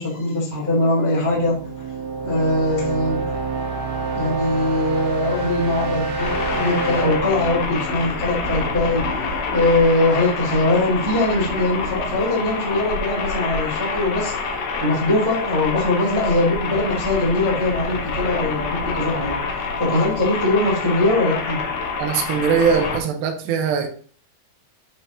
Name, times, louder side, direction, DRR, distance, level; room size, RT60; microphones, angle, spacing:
voice 1, 0.0-1.8 2.2-3.3 4.1-9.0 9.5-14.3 14.8-19.4 19.8-21.6, left 2 dB, 15° right, -6 dB, 1.0 m, -21 dB
sound 1, 1.2-9.0, right 3 dB, 60° right, 2.7 m, -27 dB
sound 2, 6.2-23.0, left 4 dB, 70° left, 2.2 m, -27 dB
voice 2, 22.0-23.9, right 6 dB, 80° right, 5 dB, 2.5 m, -21 dB
11.5 x 4.5 x 2.8 m, 0.44 s
omnidirectional pair, 5.7 m